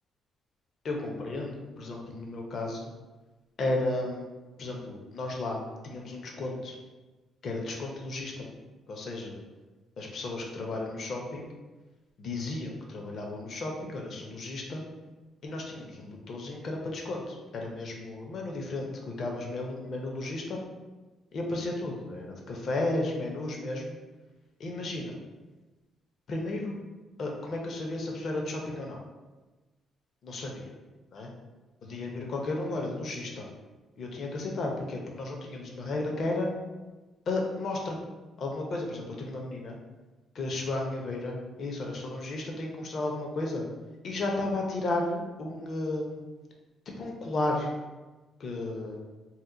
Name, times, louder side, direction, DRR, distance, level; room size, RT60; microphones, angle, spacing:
voice 1, 0.8-2.9 3.6-4.3 4.6-6.8 7.4-8.5 8.9-9.4 10.0-11.5 12.2-14.8 15.4-20.6 21.3-24.0 24.6-25.2 26.3-26.8 27.2-29.0 30.2-30.7 31.1-31.3 31.8-33.5 34.0-36.5 37.3-38.0 38.4-39.8 40.3-43.6 44.0-46.2 47.0-47.7 48.4-49.0, left 2 dB, 60° left, 1 dB, 0.6 m, -33 dB
2.8 x 2.2 x 3.7 m, 1.2 s
cardioid pair, 90°, 0 cm